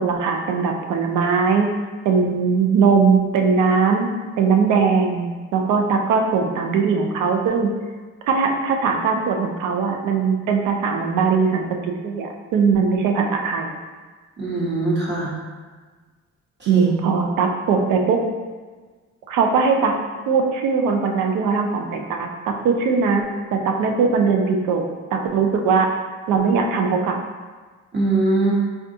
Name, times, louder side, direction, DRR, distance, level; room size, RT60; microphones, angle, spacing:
voice 1, 0.0-1.7 2.0-4.1 4.4-7.7 8.3-13.7 16.7-18.2 19.3-19.9 20.3-24.8 25.1-25.9 26.3-27.2, right 5 dB, 80° right, 3 dB, 0.5 m, -20 dB
voice 2, 14.4-15.3 16.6-16.9 27.9-28.5, right 2 dB, 35° right, -6 dB, 1.0 m, -22 dB
3.5 x 2.3 x 2.6 m, 1.4 s
cardioid pair, 90°, 30 cm